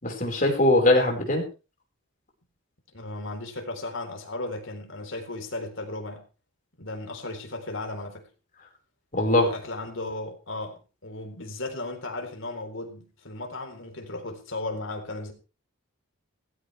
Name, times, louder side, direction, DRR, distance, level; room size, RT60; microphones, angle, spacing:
voice 1, 0.0-1.4 9.1-9.5, left 1 dB, 35° left, 5.0 m, -21 dB
voice 2, 2.9-6.2 6.8-8.3 9.4-15.3, left 2 dB, 60° left, 4.0 m, -35 dB
17.5 x 16.0 x 3.4 m
head